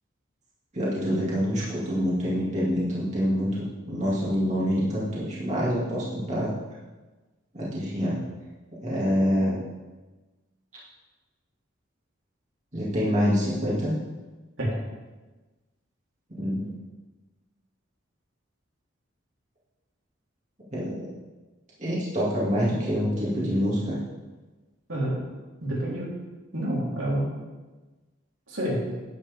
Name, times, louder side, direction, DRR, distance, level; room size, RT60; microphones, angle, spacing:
voice 1, 0.7-6.5 7.5-8.2 8.8-9.6 12.7-13.9 16.3-16.7 20.7-21.1 21.8-24.0, equal, 35° right, -7 dB, 2.4 m, -26 dB
voice 2, 25.6-26.1 26.5-27.3 28.5-28.9, right 1 dB, 80° right, -6 dB, 3.6 m, -28 dB
9.8 x 9.6 x 3.6 m, 1.2 s
head